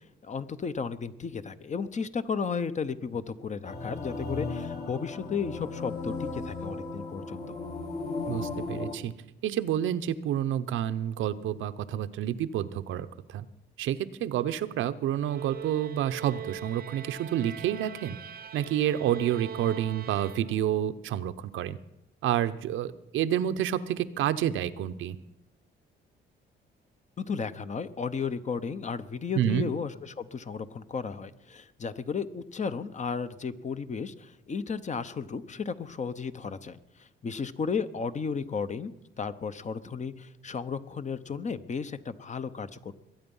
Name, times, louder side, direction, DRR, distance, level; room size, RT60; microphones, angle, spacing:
voice 1, 0.0-7.6 27.2-42.9, left 5 dB, 35° left, 12 dB, 0.9 m, -34 dB
sound 1, 3.6-8.9, left 3 dB, 50° left, 2.4 m, -36 dB
voice 2, 8.3-9.1 9.4-13.4 13.8-18.2 18.5-21.8 22.2-25.2 29.3-29.7, right 11 dB, 80° right, 12 dB, 0.8 m, -29 dB
sound 2, 15.2-20.9, right 7 dB, 50° right, 0.7 m, -42 dB
22.0 x 8.9 x 5.5 m, 0.88 s
cardioid pair, 90°, 20 cm